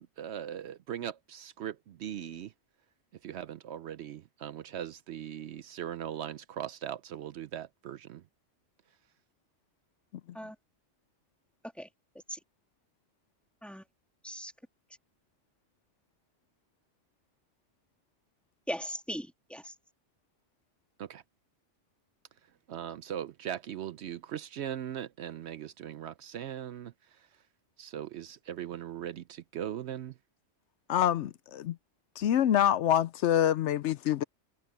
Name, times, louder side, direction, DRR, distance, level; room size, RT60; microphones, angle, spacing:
voice 1, 0.0-2.5 3.2-8.2 21.0-21.2 22.7-26.9 27.8-30.1, right 10 dB, 70° right, 0.8 m, -39 dB
voice 2, 18.7-19.7, equal, ahead, 1.7 m, -38 dB
voice 3, 30.9-31.8 32.2-34.2, left 11 dB, 75° left, 0.9 m, -26 dB
omnidirectional pair, 1.2 m